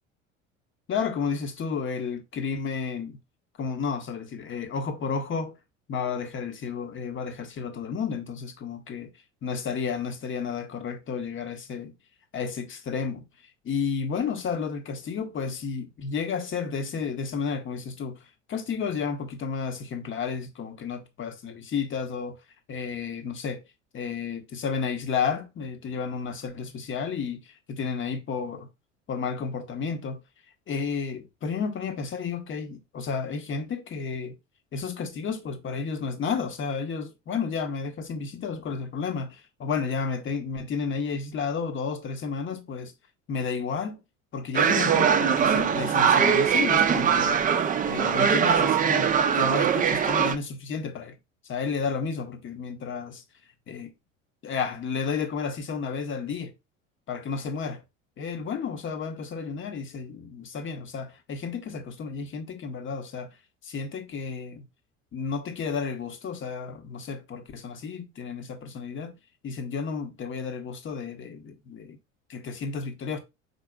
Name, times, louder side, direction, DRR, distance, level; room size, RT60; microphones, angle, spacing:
voice 1, 0.9-3.2 3.6-5.5 5.9-9.1 9.4-11.9 12.3-13.3 13.6-22.4 22.7-23.6 23.9-28.7 29.1-30.2 30.7-34.4 34.7-42.9 43.3-44.0 44.3-47.4 47.9-49.1 49.4-51.2 51.4-53.2 53.7-53.9 54.4-56.5 57.1-57.8 58.2-63.3 63.6-64.7 65.1-69.2 69.4-72.0 72.3-73.2, left 5 dB, 30° left, 1.0 m, -32 dB
sound 1, 44.5-50.3, right 7 dB, 20° right, 0.5 m, -22 dB
5.3 x 4.2 x 2.3 m
hypercardioid pair, 70°, 38 cm